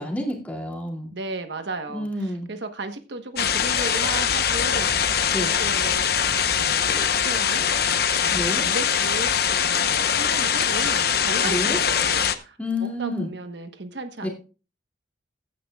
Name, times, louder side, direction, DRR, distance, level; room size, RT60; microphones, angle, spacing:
voice 1, 0.0-1.1 1.9-2.5 5.3-5.5 8.3-8.6 11.4-11.8 12.6-13.3 14.2-14.3, left 1 dB, 10° left, 0 dB, 2.6 m, -29 dB
voice 2, 1.1-14.3, right 2 dB, 70° right, 7 dB, 1.2 m, -35 dB
sound 1, 3.4-12.3, left 8 dB, 55° left, 0.9 m, -22 dB
15.5 x 10.5 x 2.4 m, 0.34 s
head